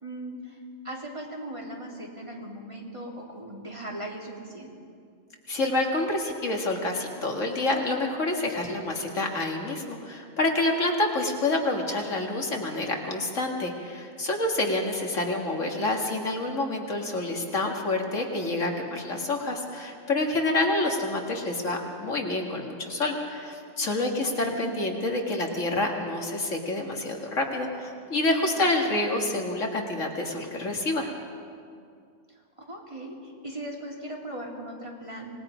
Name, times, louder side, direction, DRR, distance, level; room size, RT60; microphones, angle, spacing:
voice 1, 0.0-4.7 24.2-24.7 28.5-29.0 32.3-35.4, right 1 dB, 25° right, -2 dB, 2.9 m, -39 dB
voice 2, 5.5-31.1, left 2 dB, 70° left, 1 dB, 2.4 m, -28 dB
26.0 x 19.5 x 5.1 m, 2.3 s
omnidirectional pair, 1.3 m